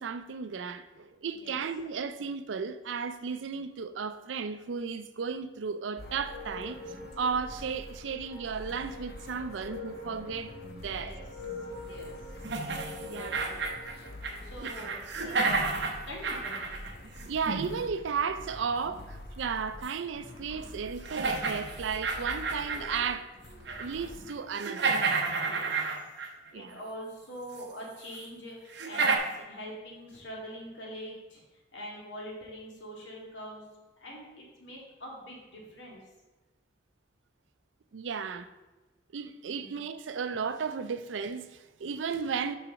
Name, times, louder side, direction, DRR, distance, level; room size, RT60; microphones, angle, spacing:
voice 1, 0.0-6.8 7.2-11.1 13.0-13.5 14.6-14.7 17.2-23.3 23.8-25.0 26.5-26.8 37.9-38.5 39.1-42.6, right 6 dB, 90° right, 0.5 m, -34 dB
sound 1, 6.0-24.3, left 1 dB, 55° left, 0.6 m, -47 dB
sound 2, 6.0-14.1, left 2 dB, 30° right, 1.6 m, -45 dB
voice 2, 10.7-11.2 11.8-12.3 13.0-13.6 14.4-16.8 25.4-25.9 26.4-33.7 34.0-36.0 39.5-39.8, equal, 80° left, 1.9 m, -44 dB
sound 3, 12.4-14.4 14.6-17.7 19.8-19.9 20.5-20.6 21.0-23.1 23.5-24.0 24.3-26.5 27.6-27.7 28.1-28.2 28.7-29.2, right 4 dB, 70° right, 0.8 m, -31 dB
5.8 x 4.7 x 5.1 m
head